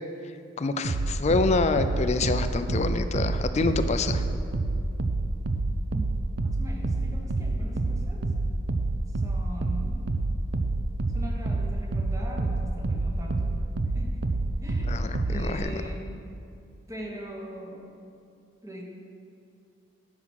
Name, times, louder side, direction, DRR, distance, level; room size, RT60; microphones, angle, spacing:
voice 1, 0.6-4.2 14.9-15.8, left 3 dB, 35° left, 9 dB, 0.4 m, -27 dB
sound 1, 0.8-15.6, right 2 dB, 60° right, 0.5 m, -28 dB
voice 2, 6.4-8.3 9.1-10.1 11.1-13.6 13.9-14.2 14.6-16.1 16.9-17.9 18.6-18.8, right 1 dB, 15° right, 0 dB, 1.2 m, -41 dB
9.7 x 5.8 x 6.3 m, 2.5 s
head